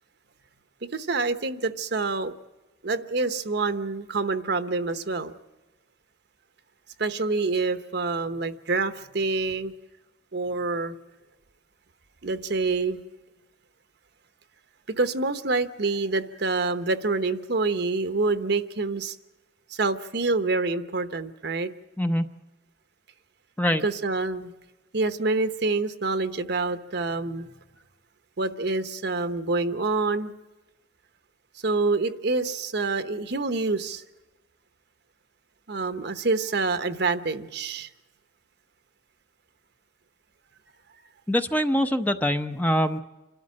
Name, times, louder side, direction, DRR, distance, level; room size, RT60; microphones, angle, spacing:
voice 1, 0.9-2.3 2.8-5.3 7.0-9.7 10.3-11.0 12.2-13.0 15.0-19.2 19.7-21.7 23.8-24.5 24.9-27.5 28.4-30.3 31.6-34.0 35.7-37.9, right 3 dB, 60° right, 10 dB, 0.9 m, -27 dB
voice 2, 41.3-43.0, equal, 10° left, 7 dB, 0.6 m, -24 dB
28.0 x 13.0 x 7.5 m, 1.1 s
head